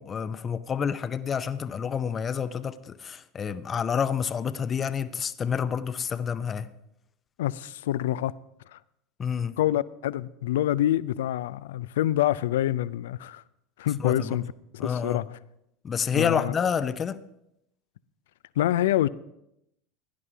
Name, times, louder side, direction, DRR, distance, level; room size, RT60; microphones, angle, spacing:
voice 1, 0.0-6.7 9.2-9.5 14.0-14.4 14.8-15.2 15.8-17.2, left 7 dB, 30° left, 0.6 m, -28 dB
voice 2, 7.4-8.3 8.7-8.8 9.6-13.4 13.8-14.5 14.7-15.4 16.1-16.5 18.6-19.1, left 13 dB, 75° left, 0.4 m, -26 dB
16.5 x 11.0 x 3.4 m
hypercardioid pair, 80°, 0 cm